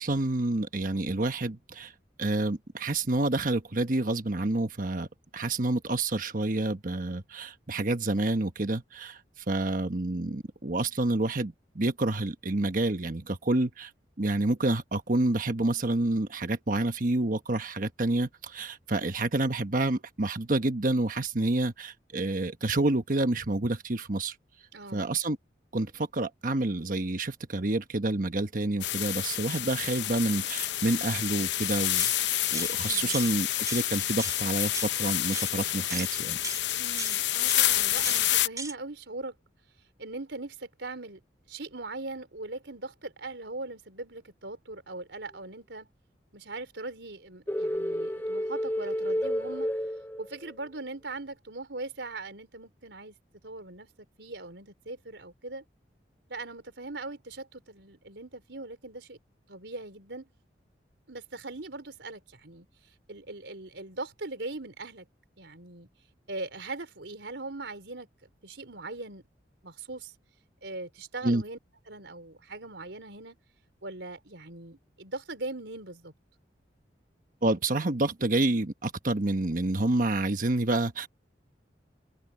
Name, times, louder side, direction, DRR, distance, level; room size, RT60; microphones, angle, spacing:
voice 1, 0.0-1.9 2.2-5.1 5.3-9.2 9.5-13.9 14.2-24.3 24.9-25.4 25.7-32.0 32.5-36.4 71.2-71.4 77.4-81.1, right 2 dB, 50° right, 1.2 m, -28 dB
voice 2, 24.7-25.2 32.9-33.2 36.8-39.3 40.0-41.2 41.5-45.9 46.3-49.7 50.2-53.2 53.4-53.9 54.2-55.6 56.3-59.2 59.5-60.3 61.1-62.7 63.1-65.1 65.4-65.9 66.3-68.1 68.4-69.2 69.6-70.1 70.6-71.6 71.9-73.4 73.8-76.1, right 2 dB, 85° right, 4.0 m, -40 dB
sound 1, 28.8-38.5, left 14 dB, 80° left, 0.7 m, -29 dB
sound 2, 32.0-32.2 32.5-32.7 33.1-33.3 33.7-33.9 34.2-34.4 34.7-34.9 35.3-35.5 35.9-36.1 36.4-36.6 37.0-37.2 37.5-37.7 38.0-38.2 38.6-38.7, right 4 dB, 20° right, 3.0 m, -37 dB
sound 3, 47.5-50.7, equal, 10° left, 0.6 m, -31 dB
head